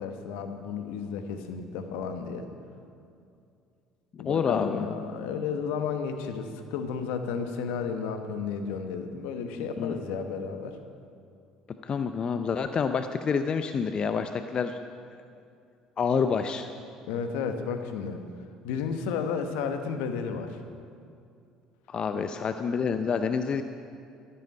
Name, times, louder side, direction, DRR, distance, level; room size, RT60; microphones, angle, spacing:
voice 1, 0.0-2.5 4.2-10.8 17.1-18.2 18.6-20.6 22.1-22.3, left 6 dB, 70° left, 7 dB, 1.1 m, -32 dB
voice 2, 4.1-4.9 9.6-10.0 11.8-14.8 16.0-16.7 21.9-23.6, left 6 dB, 40° left, 8 dB, 0.6 m, -28 dB
12.5 x 12.0 x 5.4 m, 2.4 s
hypercardioid pair, 60°, 2 cm